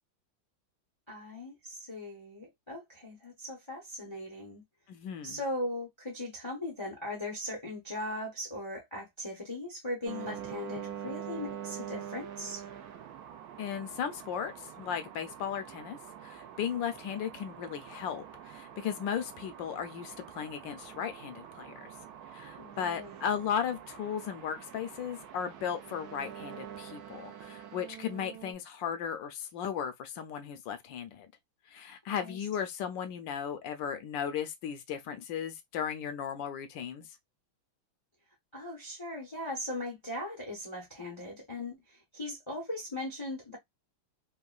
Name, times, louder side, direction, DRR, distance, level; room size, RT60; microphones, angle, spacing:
voice 1, 1.1-4.6 5.2-12.6 22.6-23.2 32.1-32.4 38.5-43.6, left 1 dB, 45° left, 0.3 m, -39 dB
voice 2, 4.9-5.4 13.6-21.9 22.3-31.3 31.7-37.1, left 8 dB, 75° left, 1.1 m, -36 dB
sound 1, 10.1-28.5, right 9 dB, 80° right, 0.8 m, -45 dB
3.6 x 2.2 x 2.3 m
omnidirectional pair, 2.2 m